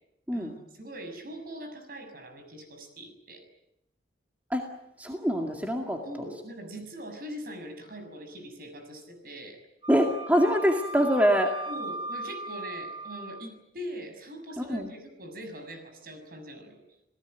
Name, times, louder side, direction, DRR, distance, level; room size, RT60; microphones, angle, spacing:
voice 1, 0.8-3.4 6.0-9.6 11.7-16.8, equal, 50° right, 7 dB, 6.7 m, -42 dB
voice 2, 5.0-6.0 9.9-11.5 14.6-14.9, equal, 10° right, 2 dB, 2.2 m, -24 dB
Wind instrument woodwind instrument, 9.8-13.5, right 2 dB, 25° right, 3.1 m, -37 dB
29.0 x 18.0 x 9.2 m, 0.84 s
head